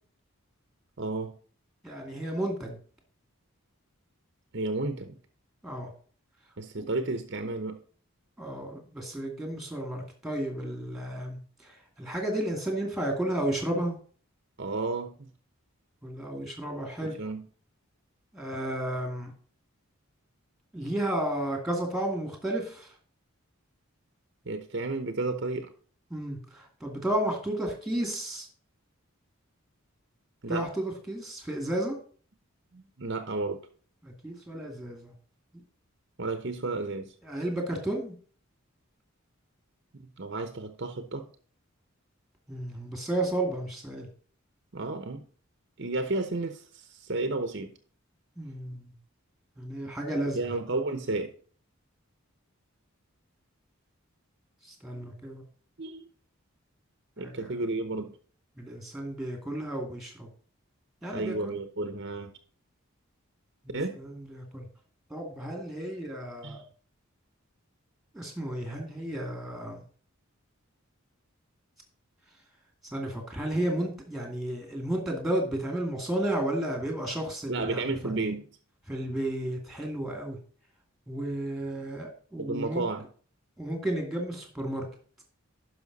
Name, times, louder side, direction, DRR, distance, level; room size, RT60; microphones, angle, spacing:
voice 1, 1.0-1.3 4.5-5.2 6.6-7.8 14.6-15.3 17.0-17.4 24.5-25.7 30.4-30.7 32.7-33.6 36.2-37.1 39.9-41.3 44.7-45.3 45.8-47.7 50.1-51.3 55.8-56.1 57.2-58.1 61.1-62.3 63.7-64.0 66.4-66.6 77.5-78.5 82.4-83.1, right 2 dB, 50° right, 0.9 m, -32 dB
voice 2, 1.8-2.8 5.6-5.9 6.8-6.9 8.4-14.0 16.0-17.2 18.3-19.3 20.7-22.9 26.1-28.5 30.5-32.0 34.0-35.1 37.2-38.1 42.5-44.1 48.4-48.9 49.6-50.4 54.6-55.4 57.2-57.5 58.6-60.3 61.0-61.5 63.6-64.7 65.1-66.6 68.1-69.8 72.9-78.1 78.9-80.4 81.1-82.9 83.6-84.9, right 1 dB, ahead, 2.4 m, -32 dB
11.0 x 5.7 x 4.1 m
head